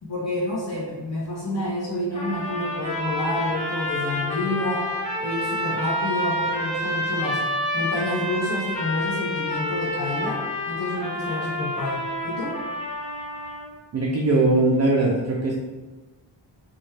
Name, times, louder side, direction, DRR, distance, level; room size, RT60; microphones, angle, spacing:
voice 1, 0.0-4.9 5.2-7.4 7.7-12.6, left 1 dB, 35° left, -8 dB, 1.1 m, -29 dB
sound 1, 2.1-13.7, left 1 dB, 15° left, 0.9 m, -28 dB
voice 2, 13.9-15.5, right 2 dB, 35° right, -2 dB, 0.4 m, -20 dB
2.9 x 2.4 x 3.2 m, 1.3 s
wide cardioid pair, 80°, 46 cm